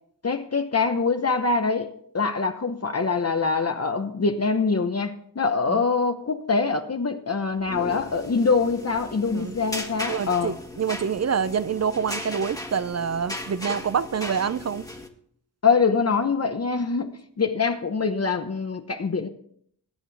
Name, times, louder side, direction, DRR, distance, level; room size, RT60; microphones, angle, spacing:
voice 1, 0.2-10.5 15.6-19.3, left 4 dB, 40° left, 0.9 m, -24 dB
sound 1, 7.6-15.1, left 1 dB, 10° left, 1.6 m, -37 dB
voice 2, 10.1-14.9, right 7 dB, 40° right, 0.5 m, -26 dB
21.5 x 8.2 x 3.4 m
cardioid pair, 75°, 40 cm